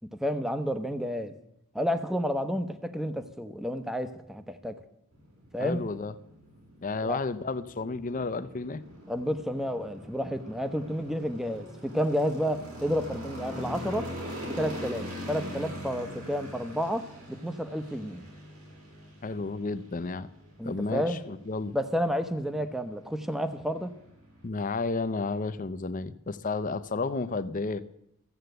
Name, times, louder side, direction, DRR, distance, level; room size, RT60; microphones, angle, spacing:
voice 1, 0.2-1.4 1.7-4.8 5.5-5.8 7.1-7.2 9.1-14.1 14.4-18.2 20.6-21.2 21.7-23.9, equal, ahead, 9 dB, 0.8 m, -30 dB
sound 1, 5.1-24.5, equal, 80° right, 4.8 m, -43 dB
voice 2, 5.6-6.1 6.8-8.8 19.2-20.3 20.6-21.7 24.4-27.8, left 3 dB, 35° left, 13 dB, 0.6 m, -32 dB
14.5 x 8.0 x 7.9 m, 0.79 s
head